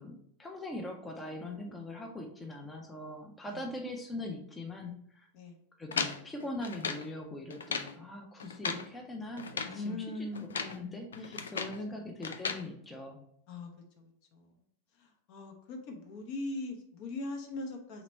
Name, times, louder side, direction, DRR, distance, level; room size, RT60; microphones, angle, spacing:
voice 1, 0.0-5.3 5.8-13.2, left 1 dB, 10° left, 1 dB, 0.6 m, -42 dB
sound 1, 5.9-7.1 7.5-8.0 8.4-8.9 9.4-9.8 10.3-10.8 11.1-11.8 12.2-12.6, left 5 dB, 70° left, 0.3 m, -36 dB
voice 2, 9.7-10.8 11.1-11.6 11.9-12.0 13.5-13.7 14.0-14.5 15.0-18.0, left 2 dB, 45° left, 3 dB, 0.8 m, -41 dB
3.3 x 3.0 x 4.1 m, 0.68 s
figure-of-eight pair, 90°, 0 cm